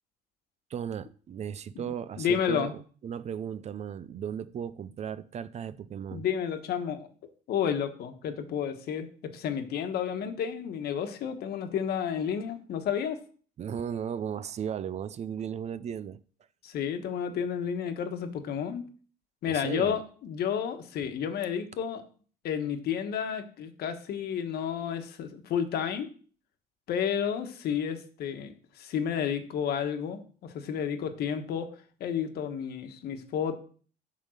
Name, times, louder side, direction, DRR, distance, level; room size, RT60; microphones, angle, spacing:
voice 1, 0.7-6.2 13.6-16.2 19.5-20.0, right 8 dB, 40° right, 0.4 m, -36 dB
voice 2, 1.7-2.7 6.1-7.1 7.5-13.2 16.6-18.8 19.4-22.0 22.4-26.1 26.9-31.7 32.0-33.6, left 8 dB, 70° left, 1.3 m, -31 dB
8.6 x 3.7 x 6.4 m
cardioid pair, 110°, 17 cm